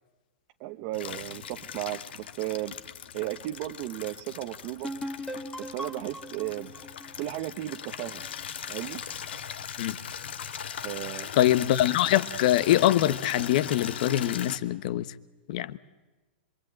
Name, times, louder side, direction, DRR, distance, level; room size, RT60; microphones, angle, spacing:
voice 1, 0.6-2.7 3.1-4.9 5.6-6.7 7.2-8.2 8.7-9.0 10.8-11.3, right 16 dB, 35° right, 1.0 m, -35 dB
Water tap faucet / Liquid, 0.9-14.6, left 8 dB, 75° left, 1.7 m, -39 dB
sound 1, 4.8-8.4, equal, 5° left, 1.7 m, -39 dB
voice 2, 11.4-15.1 15.5-15.8, left 13 dB, 45° left, 1.0 m, -24 dB
26.5 x 23.5 x 9.0 m
hypercardioid pair, 160°, 6 cm